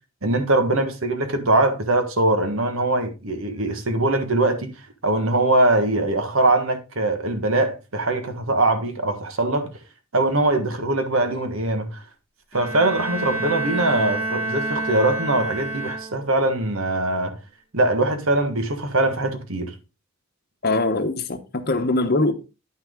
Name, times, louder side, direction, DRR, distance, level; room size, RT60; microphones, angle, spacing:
voice 1, 0.2-4.7 5.0-9.7 10.1-12.0 12.5-17.4 17.7-19.7, right 2 dB, 65° right, 1.4 m, -22 dB
Bowed string instrument, 12.5-16.5, right 2 dB, 10° right, 1.8 m, -28 dB
voice 2, 20.6-22.3, left 2 dB, 45° left, 1.0 m, -22 dB
9.9 x 5.9 x 3.7 m
head